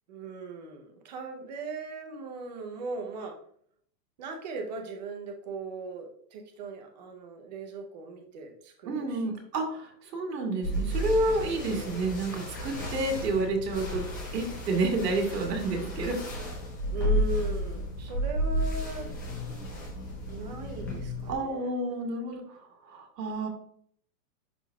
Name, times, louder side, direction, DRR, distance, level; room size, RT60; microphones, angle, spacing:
voice 1, 0.1-3.4 4.2-9.4 16.9-19.1 20.3-21.7, right 4 dB, 25° right, 4 dB, 0.6 m, -38 dB
voice 2, 8.9-14.1 14.3-16.2 21.3-23.5, right 2 dB, 75° right, 2 dB, 2.1 m, -30 dB
sound 1, 10.6-21.3, equal, 15° left, 0.5 m, -32 dB
11.0 x 3.8 x 2.3 m, 0.63 s
supercardioid pair, 170°, 50 cm